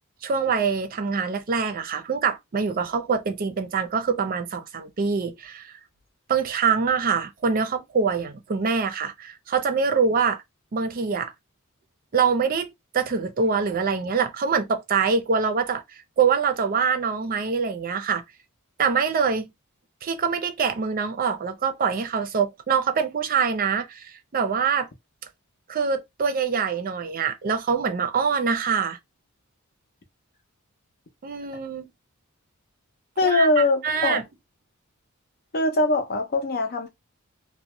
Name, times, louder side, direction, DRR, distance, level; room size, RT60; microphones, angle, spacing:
voice 1, 0.2-5.8 6.3-10.4 10.7-11.3 12.1-15.8 16.2-18.2 18.8-19.5 20.0-24.9 25.7-29.0 31.2-31.9 33.2-34.2, right 5 dB, 40° right, 0.5 m, -24 dB
voice 2, 33.2-34.2 35.5-36.9, left 2 dB, 45° left, 0.6 m, -22 dB
2.6 x 2.2 x 2.9 m
head